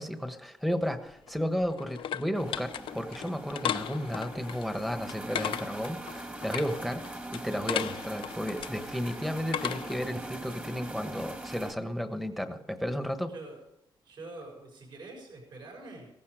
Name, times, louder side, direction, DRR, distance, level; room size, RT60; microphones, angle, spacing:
voice 1, 0.0-7.0 7.3-13.3, equal, ahead, 8 dB, 1.2 m, -33 dB
sound 1, 1.1-10.1, left 9 dB, 85° left, 0.6 m, -37 dB
sound 2, 2.3-11.7, right 1 dB, 15° right, 1.7 m, -42 dB
voice 2, 13.3-13.6 14.0-16.1, right 2 dB, 60° right, 0 dB, 6.7 m, -45 dB
17.0 x 15.0 x 5.0 m, 0.77 s
wide cardioid pair, 170°, 9 cm